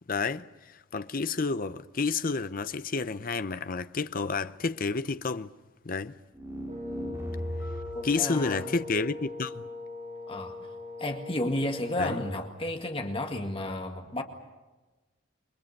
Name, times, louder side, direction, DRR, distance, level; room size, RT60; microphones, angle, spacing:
voice 1, 0.1-5.5 5.8-6.1 8.0-9.7 12.0-12.2, left 4 dB, 45° left, 0.7 m, -30 dB
sound 1, 6.3-8.1, equal, 15° right, 5.3 m, -36 dB
Wind instrument woodwind instrument, 6.7-12.5, left 3 dB, 35° right, 6.3 m, -41 dB
voice 2, 7.9-8.8 10.3-10.6 11.0-14.2, left 1 dB, 25° left, 2.0 m, -32 dB
29.0 x 23.5 x 6.6 m
head